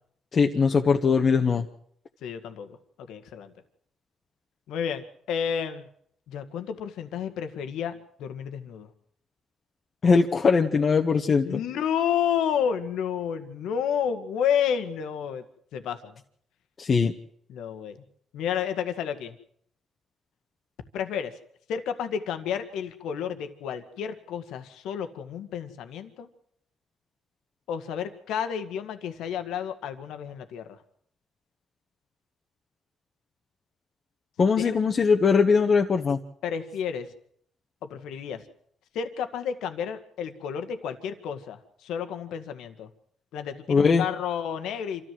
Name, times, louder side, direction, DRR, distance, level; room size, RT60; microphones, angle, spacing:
voice 1, 0.3-1.7 10.0-11.6 16.8-17.1 34.4-36.2 43.7-44.0, left 5 dB, 45° left, 2 dB, 1.4 m, -21 dB
voice 2, 2.2-2.8 3.1-3.5 4.7-5.9 6.3-8.9 11.4-15.4 15.7-16.1 17.5-18.0 18.3-19.4 20.9-21.3 21.7-26.3 27.7-30.7 34.6-34.8 36.4-37.1 37.8-38.4 38.9-42.9 43.3-45.1, left 8 dB, 85° left, 8 dB, 1.8 m, -31 dB
26.0 x 14.0 x 7.8 m, 0.65 s
cardioid pair, 90°, 0 cm